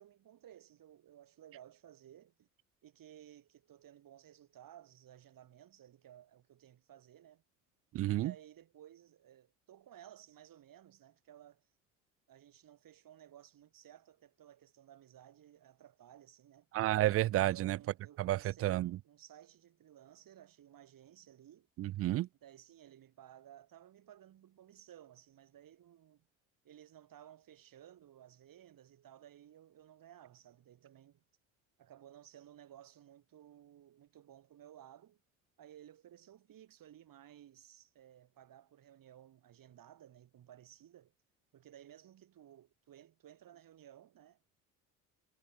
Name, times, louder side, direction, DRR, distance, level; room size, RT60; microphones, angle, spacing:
voice 1, 0.0-2.5 2.8-7.4 8.1-11.7 12.3-16.7 17.5-21.7 22.4-26.3 26.6-31.2 31.8-35.2 35.6-41.1 41.5-44.6, right 11 dB, 50° right, 5.8 m, -57 dB
voice 2, 7.9-8.3 16.7-17.8 18.2-19.0 21.8-22.3, right 15 dB, 35° right, 0.4 m, -31 dB
hypercardioid pair, 65°, 42 cm